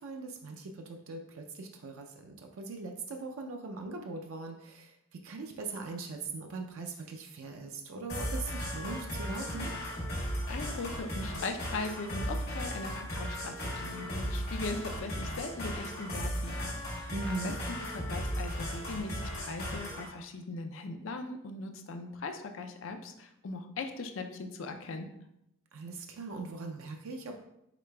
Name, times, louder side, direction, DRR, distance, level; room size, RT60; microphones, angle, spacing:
voice 1, 0.0-9.7 17.1-17.6 25.7-27.4, right 3 dB, 80° right, 3 dB, 0.4 m, -40 dB
sound 1, 8.1-20.1, equal, 50° left, 1.4 m, -36 dB
voice 2, 10.5-25.1, left 3 dB, 65° left, 6 dB, 0.4 m, -40 dB
4.9 x 3.9 x 2.2 m, 0.81 s
head